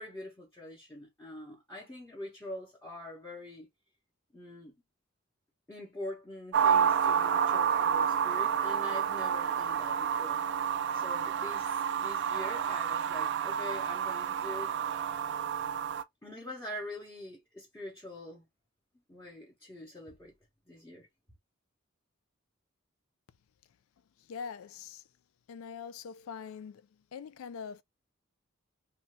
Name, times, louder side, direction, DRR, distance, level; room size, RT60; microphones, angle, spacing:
voice 1, 0.0-3.7 4.3-4.7 5.7-10.5 10.9-14.8 16.2-18.4 19.1-20.3 20.7-21.1, left 1 dB, 10° left, 0.9 m, -44 dB
sound 1, 6.5-16.0, right 8 dB, 55° right, 0.3 m, -29 dB
voice 2, 24.3-25.0 25.5-27.8, left 6 dB, 80° left, 0.3 m, -43 dB
2.7 x 2.3 x 2.9 m
head